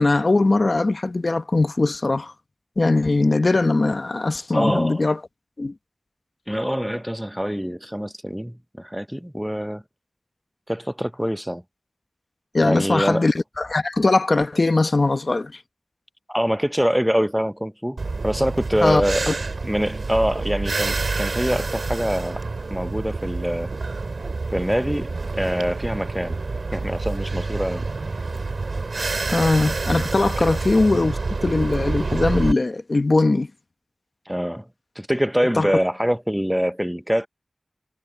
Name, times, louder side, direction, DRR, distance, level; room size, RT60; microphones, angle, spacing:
voice 1, 0.0-2.3 2.8-5.2 5.6-5.7 12.5-15.6 18.8-19.3 29.3-33.5 35.5-35.7, left 2 dB, 60° left, 1.1 m, -20 dB
voice 2, 4.5-5.0 6.5-9.8 10.7-11.6 12.6-13.3 16.3-19.3 19.6-22.4 22.7-23.7 24.5-26.4 26.7-27.9 30.4-30.5 34.3-34.7 35.0-37.3, equal, 5° right, 0.7 m, -24 dB
sound 1, 18.0-32.5, right 3 dB, 90° right, 2.1 m, -28 dB
wide cardioid pair, 55°, 0 cm